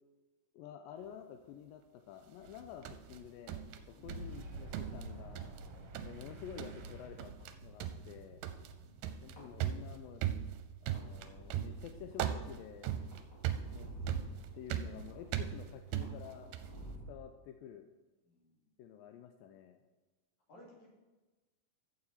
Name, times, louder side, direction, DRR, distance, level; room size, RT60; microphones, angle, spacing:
voice 1, 0.5-5.5 6.0-7.3 7.6-8.4 9.2-10.3 10.8-12.9 13.7-13.9 14.5-16.5 17.1-17.9 18.8-19.8, left 9 dB, 85° left, 6 dB, 2.3 m, -50 dB
sound 1, 2.5-17.2, right 2 dB, 30° left, 3.4 m, -53 dB
sound 2, 2.5-4.4 4.7-5.7 5.9-6.3 6.6-6.9 7.2-7.5 7.8-16.8, right 10 dB, 80° right, 2.2 m, -39 dB
voice 2, 3.9-4.4 8.7-9.1 18.2-18.7 20.5-20.9, left 1 dB, 55° left, -3 dB, 3.9 m, -60 dB
Boom, 4.0-10.6, right 2 dB, 50° right, 1.7 m, -49 dB
15.0 x 6.9 x 4.2 m, 1.2 s
omnidirectional pair, 4.1 m